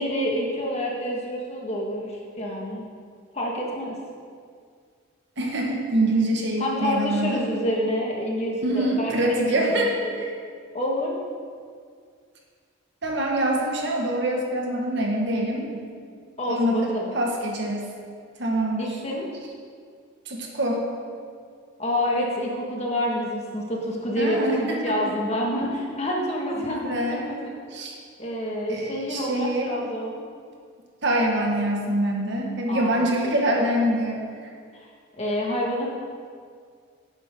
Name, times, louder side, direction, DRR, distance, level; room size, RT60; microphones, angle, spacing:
voice 1, 0.0-2.8 3.3-4.0 6.6-10.1 10.7-11.1 16.4-17.1 18.8-19.3 21.8-27.5 28.2-30.2 32.7-33.1 33.5-33.6 34.7-34.9 35.2-35.9, equal, 30° left, -2 dB, 2.0 m, -28 dB
voice 2, 5.4-7.4 8.6-10.3 13.0-15.9 16.4-16.9 17.1-17.9 18.4-19.0 20.3-20.9 24.2-25.1 26.7-27.2 27.7-27.9 28.7-29.7 31.0-34.2, right 1 dB, 55° right, -1 dB, 2.0 m, -25 dB
18.0 x 9.2 x 3.9 m, 2.1 s
head